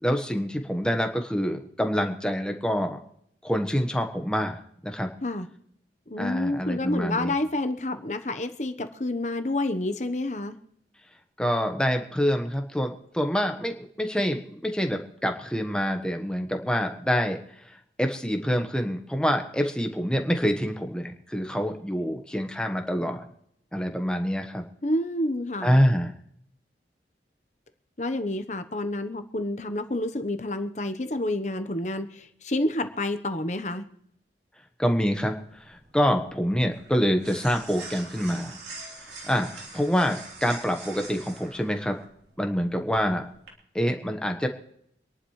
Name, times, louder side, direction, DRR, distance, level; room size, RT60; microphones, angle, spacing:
voice 1, 0.0-3.0 3.4-5.1 6.2-7.3 11.4-17.4 17.7-23.2 23.7-24.6 25.6-26.1 34.8-35.4 35.6-38.6 39.3-42.0 42.4-43.2 43.7-44.5, equal, 5° left, 4 dB, 1.3 m, -26 dB
voice 2, 6.1-10.6 24.8-25.8 28.0-33.8, left 1 dB, 40° left, 8 dB, 1.1 m, -29 dB
sound 1, 35.0-43.5, right 3 dB, 70° right, 3.8 m, -44 dB
26.5 x 11.0 x 3.3 m, 0.71 s
head